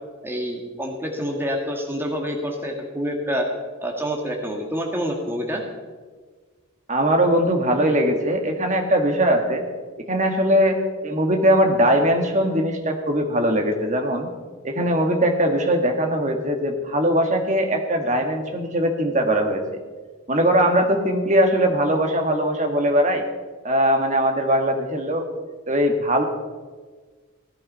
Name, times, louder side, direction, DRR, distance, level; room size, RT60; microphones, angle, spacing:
voice 1, 0.2-3.5 3.8-5.6, equal, 10° right, 1 dB, 1.6 m, -27 dB
voice 2, 6.9-9.6 10.1-14.3 14.6-19.6 20.3-23.2 23.6-25.3 25.7-26.2, equal, 35° right, 4 dB, 1.7 m, -20 dB
17.0 x 11.5 x 5.5 m, 1.4 s
head